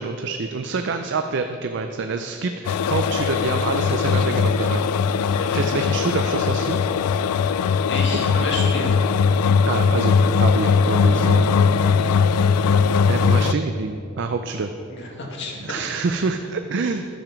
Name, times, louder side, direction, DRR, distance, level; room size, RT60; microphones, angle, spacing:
voice 1, 0.0-5.0 5.5-6.8 8.3-8.4 9.7-10.1 10.4-11.4 13.1-14.7 15.6-17.1, right 4 dB, 50° right, 7 dB, 0.4 m, -26 dB
sound 1, 2.6-13.5, left 5 dB, 85° left, 0.3 m, -19 dB
voice 2, 7.9-9.0 11.1-11.5 14.9-15.6, left 2 dB, 50° left, -1 dB, 1.8 m, -30 dB
10.5 x 7.0 x 5.8 m, 2.8 s
head